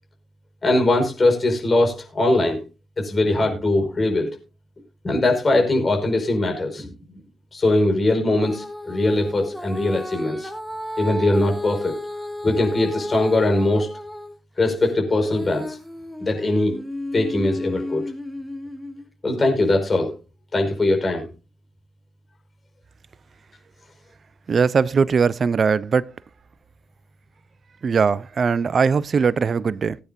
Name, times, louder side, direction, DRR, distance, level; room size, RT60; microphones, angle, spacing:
voice 1, 0.6-2.6 3.0-4.4 5.0-6.9 7.5-10.5 11.0-12.0 12.4-13.9 14.6-15.8 16.2-16.8 17.1-18.1 19.2-20.1 20.5-21.3, left 2 dB, 40° left, 5.1 m, -21 dB
Female singing, 8.4-14.3 14.8-19.1 19.7-19.8, left 1 dB, ahead, 2.2 m, -34 dB
voice 2, 24.5-26.1 27.8-30.0, right 5 dB, 50° right, 0.6 m, -20 dB
20.5 x 9.5 x 2.7 m
hypercardioid pair, 40°, 0 cm